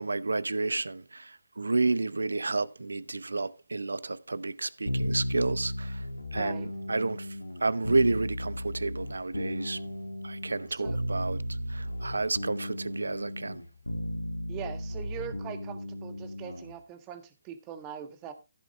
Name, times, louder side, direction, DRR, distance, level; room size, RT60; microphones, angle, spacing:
voice 1, 0.0-6.0 6.3-7.4 7.6-9.8 10.2-11.4 11.7-13.6, right 3 dB, 70° right, 0.8 m, -30 dB
sound 1, 4.9-16.7, equal, 85° left, 2.2 m, -35 dB
voice 2, 6.3-6.7 10.7-11.0 14.5-18.3, right 9 dB, 20° right, 1.7 m, -42 dB
14.5 x 7.0 x 3.4 m
figure-of-eight pair, 140°, 0 cm